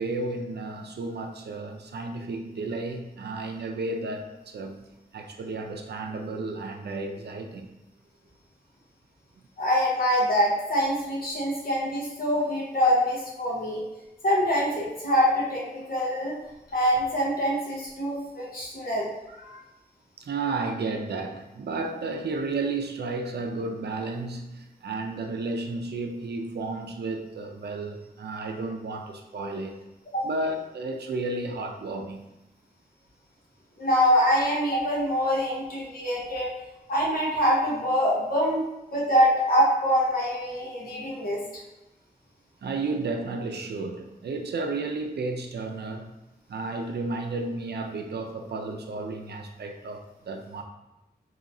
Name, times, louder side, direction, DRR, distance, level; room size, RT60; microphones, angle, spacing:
voice 1, 0.0-4.8 5.1-7.7 20.2-29.8 30.2-32.3 42.6-46.1 46.5-50.6, right 3 dB, 80° right, 4 dB, 0.5 m, -32 dB
voice 2, 9.6-13.8 14.2-16.3 16.7-19.1 19.4-19.6 30.1-30.2 33.8-36.5 36.9-38.6 38.9-41.4, equal, 60° left, -5 dB, 1.0 m, -24 dB
4.0 x 2.7 x 2.6 m, 0.96 s
wide cardioid pair, 90°, 17 cm